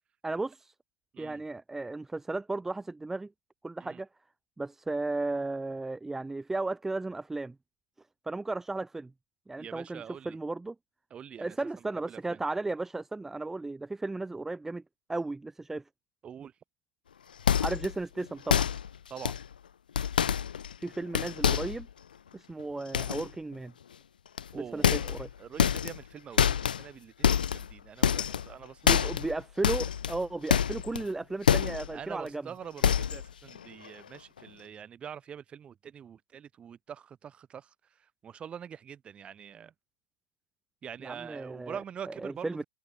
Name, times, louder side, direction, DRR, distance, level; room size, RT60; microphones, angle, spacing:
voice 1, 0.2-0.7 1.2-3.3 3.6-4.1 4.6-7.5 8.2-9.1 9.5-10.7 11.4-14.8 15.1-15.8 17.6-18.7 20.8-21.9 22.3-23.7 24.5-25.3 28.8-32.4 41.0-41.8 42.1-42.6, right 2 dB, 5° right, 1.1 m, -35 dB
voice 2, 9.6-10.4 11.1-12.4 16.2-16.5 19.1-19.4 24.5-25.1 25.4-29.1 31.9-39.7 40.8-42.5, right 8 dB, 25° right, 7.2 m, -45 dB
sound 1, 17.4-17.9 18.5-18.9 19.2-19.5 20.0-20.9 21.1-21.8 22.9-23.3 24.4-24.5 24.8-25.3 25.6-26.0 26.4-26.8 27.2-27.7 28.0-28.5 28.9-29.3 29.6-31.1 31.4-31.9 32.3-32.4 32.8-33.3 33.5-33.9 34.1-34.2, left 8 dB, 90° left, 0.6 m, -26 dB
hypercardioid pair, 120°, 5 cm